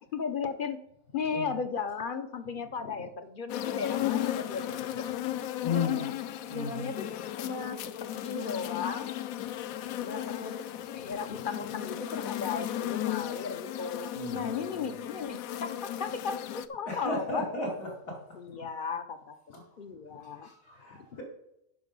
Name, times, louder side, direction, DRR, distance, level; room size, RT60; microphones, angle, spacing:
voice 1, 0.1-0.8 1.1-5.1 5.8-6.1 6.5-7.1 7.4-7.8 8.2-9.1 10.0-10.6 10.9-17.5 18.3-19.4 19.8-20.5 21.1-21.2, left 5 dB, 55° left, 10 dB, 0.6 m, -36 dB
sound 1, 3.5-16.7, left 12 dB, 70° left, 0.9 m, -35 dB
voice 2, 5.6-6.1 6.5-6.9 14.1-14.9 16.9-18.2 19.5-19.6 20.4-21.2, left 3 dB, 90° left, -1 dB, 3.2 m, -34 dB
10.0 x 6.1 x 5.3 m, 0.81 s
omnidirectional pair, 1.6 m